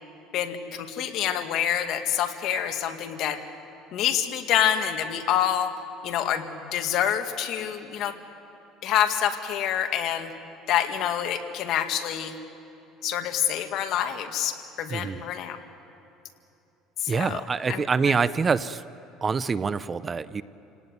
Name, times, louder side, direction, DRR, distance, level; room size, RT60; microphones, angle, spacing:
voice 1, 0.3-3.4 3.9-5.7 6.0-6.4 6.7-8.1 8.8-10.3 10.7-12.3 13.0-15.6 17.0-17.4 17.7-18.1, left 10 dB, 60° left, 7 dB, 1.9 m, -27 dB
voice 2, 14.9-15.2 17.1-18.8 19.2-20.4, right 5 dB, 25° right, 16 dB, 0.6 m, -25 dB
28.5 x 18.0 x 9.5 m, 2.9 s
cardioid pair, 120°, 0 cm